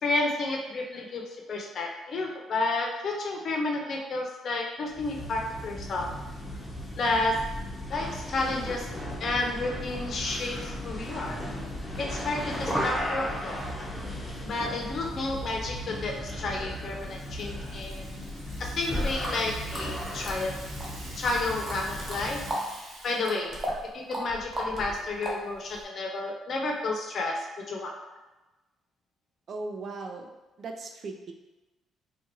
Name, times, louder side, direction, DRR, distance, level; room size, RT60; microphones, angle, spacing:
voice 1, 0.0-6.1 7.0-7.4 7.9-8.9 9.2-11.4 12.0-13.6 14.4-18.1 18.6-20.7 21.2-22.4 23.0-23.5 23.9-27.9, left 2 dB, 55° left, 0 dB, 0.7 m, -31 dB
sound 1, 4.9-22.6, equal, 5° left, 0.9 m, -36 dB
Rattle (instrument), 16.5-23.5, right 1 dB, 75° right, 1.1 m, -47 dB
sound 2, 19.2-19.4 19.7-20.9 21.2-22.7 23.0-25.8, equal, 25° right, 1.1 m, -35 dB
voice 2, 29.5-30.3 30.6-31.3, right 3 dB, 55° right, 4 dB, 0.5 m, -37 dB
4.2 x 2.4 x 3.0 m, 1.1 s
cardioid pair, 85°, 0 cm